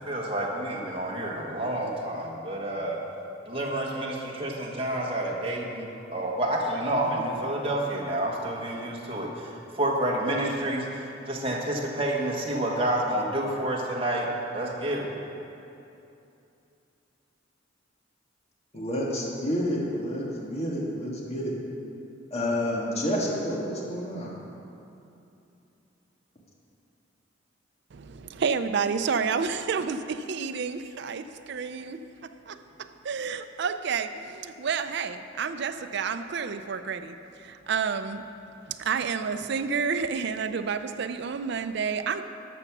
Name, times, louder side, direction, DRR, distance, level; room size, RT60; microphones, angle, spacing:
voice 1, 0.0-3.0 3.5-9.5 9.8-14.3 14.5-15.1, right 1 dB, 30° right, -2 dB, 1.5 m, -29 dB
voice 2, 18.7-21.6 22.3-24.4, equal, 35° left, -3 dB, 1.6 m, -29 dB
voice 3, 27.9-38.3 38.7-42.2, right 6 dB, 60° right, 9 dB, 0.4 m, -30 dB
12.0 x 6.9 x 6.0 m, 2.8 s
head